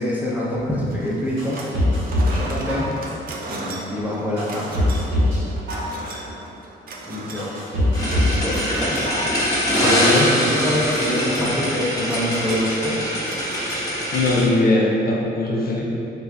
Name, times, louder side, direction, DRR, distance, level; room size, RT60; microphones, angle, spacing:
voice 1, 0.0-1.6 2.2-2.9 3.5-4.7 7.1-7.5 8.0-9.0 9.7-9.9 10.5-13.0, left 1 dB, 10° right, -7 dB, 0.8 m, -25 dB
sound 1, 0.9-1.8 2.0-14.4, right 2 dB, 45° right, 0.5 m, -37 dB
sound 2, 1.4-2.4 2.7-3.3 3.8-3.9 4.4-5.4 5.7-6.3 6.8-6.9 7.4-8.4 8.7-9.3 9.6-9.7, left 1 dB, 80° right, 1.4 m, -22 dB
sound 3, 7.9-14.4, equal, 15° left, 1.0 m, -23 dB
voice 2, 9.8-10.3 14.1-15.8, left 2 dB, 50° left, -3 dB, 0.5 m, -20 dB
3.2 x 2.3 x 3.6 m, 2.8 s
cardioid pair, 90°, 20 cm